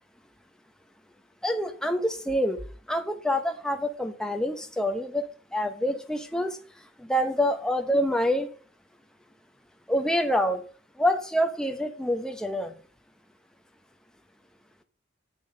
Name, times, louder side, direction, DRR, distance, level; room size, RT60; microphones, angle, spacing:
voice 1, 1.4-2.6 2.9-6.6 7.0-8.5 9.9-10.6 11.0-12.7, equal, 5° left, 5 dB, 0.9 m, -26 dB
8.7 x 7.2 x 5.4 m, 0.40 s
head